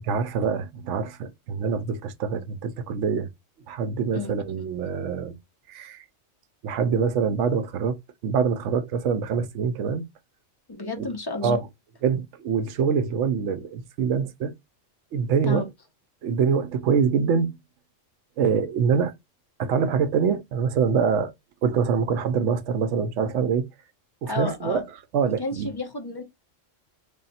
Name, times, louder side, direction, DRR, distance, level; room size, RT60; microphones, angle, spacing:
voice 1, 0.0-3.3 3.7-5.3 5.7-6.0 6.6-8.0 8.2-10.0 11.0-11.1 11.4-11.6 12.0-14.5 15.1-15.6 16.2-17.6 18.4-19.1 19.6-21.3 21.6-23.7 24.2-24.8 25.1-25.7, right 6 dB, 75° right, 0.9 m, -24 dB
voice 2, 10.7-11.6 15.4-15.7 24.3-24.8 25.4-26.2, left 3 dB, 25° left, 0.6 m, -31 dB
3.4 x 2.3 x 4.0 m
omnidirectional pair, 1.3 m